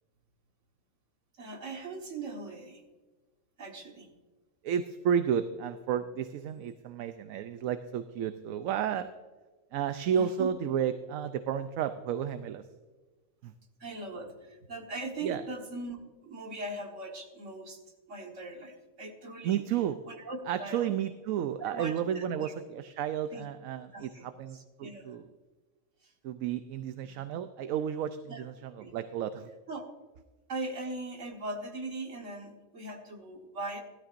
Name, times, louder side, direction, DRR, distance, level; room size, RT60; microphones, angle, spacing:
voice 1, 1.4-2.8 3.6-4.1 10.1-10.5 13.8-17.8 18.1-19.6 20.1-21.0 21.6-22.5 23.3-23.4 23.9-24.3 24.5-25.2 26.0-26.1 28.3-28.4 28.8-28.9 29.7-29.8 30.5-33.8, right 2 dB, 65° right, 2 dB, 1.8 m, -40 dB
voice 2, 4.6-9.1 9.7-12.6 13.4-13.5 15.2-15.4 19.4-20.0 20.5-25.3 26.2-29.5, right 9 dB, 80° right, 10 dB, 1.0 m, -32 dB
16.5 x 12.5 x 2.5 m, 1.3 s
omnidirectional pair, 1.4 m